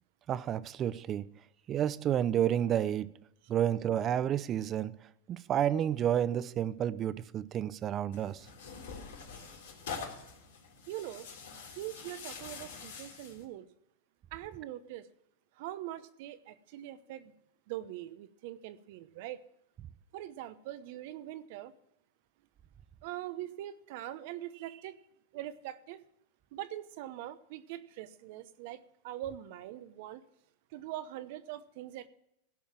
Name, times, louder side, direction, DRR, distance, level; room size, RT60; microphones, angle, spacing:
voice 1, 0.3-1.3 1.7-3.1 3.5-4.9 5.3-8.4, right 10 dB, 35° right, 0.6 m, -30 dB
Tearing, 8.1-13.4, left 5 dB, 80° left, 3.6 m, -45 dB
voice 2, 10.9-11.3 11.7-13.7 14.3-15.1 15.6-17.3 17.7-19.5 20.1-21.7 23.0-25.0 25.3-26.0 26.5-30.2 30.7-32.1, right 13 dB, 60° right, 0.9 m, -42 dB
16.5 x 5.7 x 7.3 m
hypercardioid pair, 105°, 0 cm